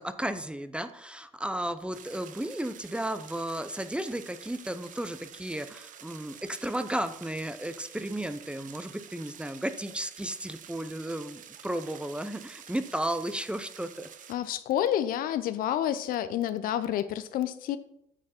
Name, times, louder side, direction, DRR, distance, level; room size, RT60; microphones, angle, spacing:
voice 1, 0.0-14.1, right 1 dB, 5° right, 11 dB, 0.7 m, -34 dB
sound 1, 1.9-14.3, right 9 dB, 55° right, 0.9 m, -49 dB
voice 2, 14.3-17.8, left 11 dB, 65° left, 13 dB, 0.6 m, -29 dB
9.0 x 6.4 x 4.3 m, 0.74 s
hypercardioid pair, 60°, 16 cm